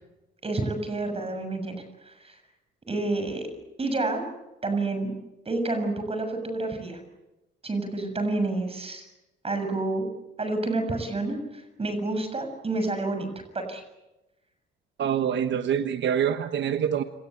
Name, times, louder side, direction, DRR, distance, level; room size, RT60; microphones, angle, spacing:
voice 1, 0.4-1.8 2.1-2.4 2.9-3.5 3.8-4.2 4.6-5.1 5.5-7.0 7.6-9.1 9.4-10.1 10.4-13.3 13.5-13.8, right 2 dB, 30° right, 6 dB, 6.9 m, -29 dB
voice 2, 15.0-17.0, right 8 dB, 65° right, 9 dB, 1.2 m, -25 dB
29.5 x 19.5 x 8.1 m, 0.99 s
cardioid pair, 90°, 20 cm